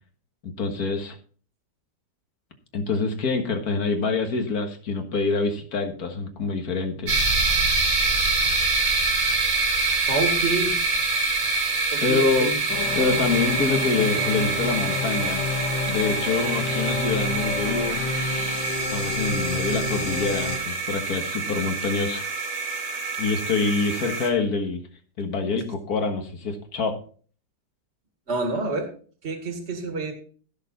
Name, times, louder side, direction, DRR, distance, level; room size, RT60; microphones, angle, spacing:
voice 1, 0.4-1.2 2.7-7.2 12.0-12.5 13.0-15.4 15.9-18.0 18.9-22.3 23.2-24.8 25.2-27.0, left 4 dB, 55° left, 5 dB, 2.0 m, -26 dB
sound 1, 7.1-24.3, right 3 dB, 85° right, 3.0 m, -26 dB
voice 2, 10.1-10.8 11.9-12.6 28.3-28.9 29.2-30.1, right 3 dB, 35° right, 4 dB, 2.3 m, -27 dB
sound 2, 12.7-20.6, left 4 dB, 90° left, 2.0 m, -29 dB
16.0 x 6.5 x 4.1 m, 0.43 s
omnidirectional pair, 1.9 m